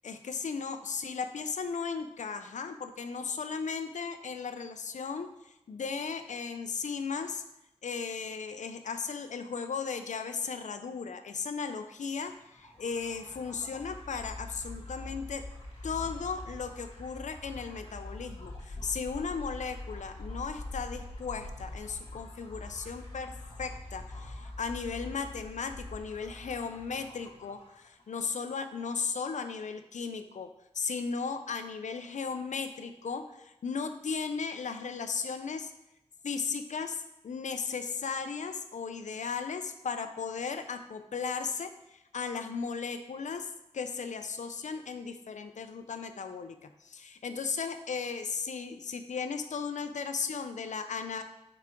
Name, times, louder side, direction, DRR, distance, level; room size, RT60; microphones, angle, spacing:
voice 1, 0.0-5.3 5.7-7.4 7.8-15.4 15.8-23.3 23.6-30.5 30.7-35.7 36.2-43.5 43.7-51.2, left 5 dB, 80° left, 8 dB, 0.6 m, -36 dB
sound 1, 12.3-28.0, left 2 dB, 50° left, 1.9 m, -44 dB
6.0 x 4.9 x 4.4 m, 0.90 s
wide cardioid pair, 100°, 12 cm